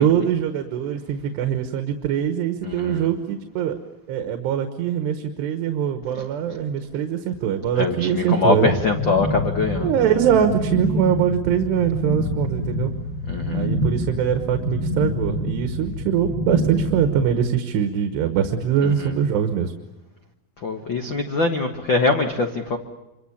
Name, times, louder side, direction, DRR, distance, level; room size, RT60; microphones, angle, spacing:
voice 1, 0.0-3.8 4.1-8.7 9.8-12.9 13.5-19.7, right 9 dB, 90° right, 7 dB, 3.5 m, -22 dB
voice 2, 2.6-3.1 6.1-6.3 7.7-10.1 13.3-13.7 18.8-19.2 20.6-22.8, left 3 dB, 75° left, 4 dB, 1.0 m, -23 dB
sound 1, 8.7-17.3, equal, 30° left, 6.8 m, -27 dB
27.0 x 25.0 x 7.2 m, 0.97 s
omnidirectional pair, 4.7 m